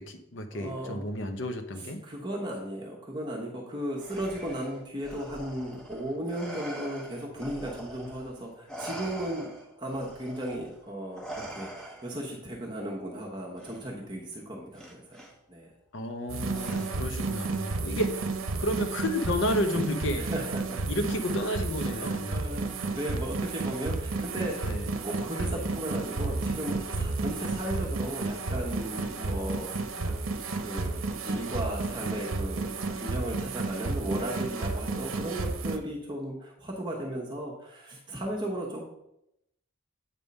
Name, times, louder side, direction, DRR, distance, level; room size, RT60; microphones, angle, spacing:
voice 1, 0.0-2.0 15.9-18.2 18.6-20.3 20.9-22.4 24.6-24.9 25.4-25.6, left 1 dB, 60° left, 7 dB, 0.7 m, -31 dB
voice 2, 0.5-1.0 1.8-9.5 9.8-15.2 15.5-15.7 20.2-21.0 21.5-21.6 21.9-24.7 25.0-29.7 30.0-30.1 30.5-38.9, right 1 dB, 20° right, -2 dB, 1.0 m, -36 dB
Respiratory sounds, 4.0-8.3 8.7-12.3 13.6-13.8 14.8-15.3 16.5-17.2, right 1 dB, 5° left, 0.9 m, -43 dB
sound 1, 16.3-35.8, right 3 dB, 75° right, 0.8 m, -32 dB
8.3 x 3.6 x 5.3 m, 0.82 s
head